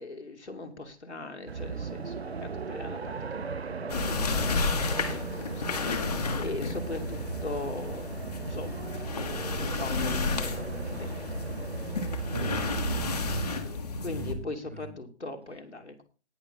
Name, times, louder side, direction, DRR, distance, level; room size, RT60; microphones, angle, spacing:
voice 1, 0.0-11.7 12.0-12.5 14.0-16.0, left 2 dB, 75° left, 3 dB, 2.7 m, -41 dB
sound 1, 1.5-13.6, right 5 dB, 65° right, 0.9 m, -36 dB
sound 2, 3.9-14.3, left 4 dB, 35° left, 1.6 m, -32 dB
voice 2, 12.3-13.6 14.1-14.9, right 3 dB, 10° right, 8 dB, 0.6 m, -40 dB
19.0 x 6.5 x 4.1 m, 0.33 s
figure-of-eight pair, 150°, 34 cm